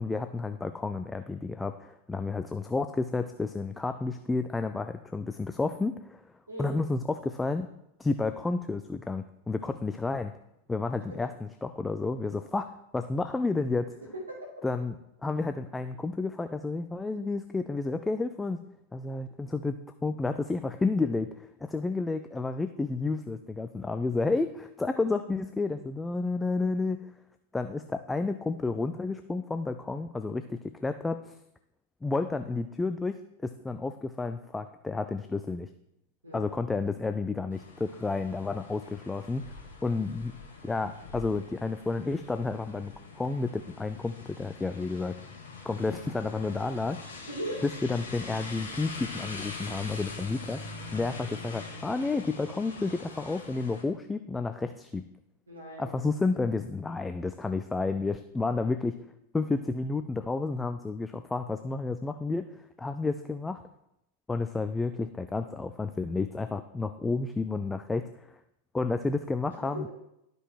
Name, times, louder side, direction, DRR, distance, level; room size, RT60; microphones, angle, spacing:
voice 1, 0.0-6.2 6.6-7.7 8.0-10.3 10.7-12.7 12.9-13.9 14.6-15.0 15.2-18.6 18.9-27.0 27.5-31.4 32.0-35.7 36.3-39.4 39.8-40.3 40.6-45.1 45.6-47.0 47.8-50.6 50.9-55.0 55.8-58.9 59.3-62.5 62.8-63.6 64.3-68.4 68.7-69.9, left 3 dB, 10° left, 9 dB, 0.3 m, -31 dB
voice 2, 6.5-6.8 11.1-11.2 14.0-14.5 36.2-36.5 47.3-47.6 55.5-56.0 69.5-69.9, right 1 dB, 75° right, -3 dB, 2.2 m, -39 dB
sound 1, 37.5-53.8, left 3 dB, 65° left, 2.0 m, -43 dB
12.0 x 5.3 x 3.1 m, 0.82 s
figure-of-eight pair, 90°, 0 cm